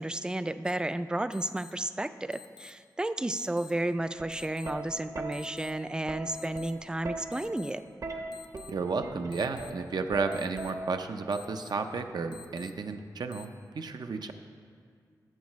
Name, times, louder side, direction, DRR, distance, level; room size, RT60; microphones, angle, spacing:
voice 1, 0.0-7.8, right 1 dB, 10° right, 12 dB, 0.3 m, -32 dB
sound 1, 0.6-0.7 1.3-1.7 2.3-2.7 3.3-3.7 4.3-4.7 5.3-5.7 6.3-6.7 7.3-7.7 8.3-8.7 9.3-9.7 10.3-10.7 11.3-11.7 12.3-12.7 13.3-13.4, left 7 dB, 80° left, 0.5 m, -49 dB
Plucked string instrument, 4.2-11.2 12.3-12.6, right 2 dB, 50° right, 0.9 m, -40 dB
voice 2, 8.7-13.5 13.7-14.3, right 4 dB, 75° right, 6 dB, 0.6 m, -32 dB
14.0 x 7.4 x 3.1 m, 2.1 s
wide cardioid pair, 95°, 7 cm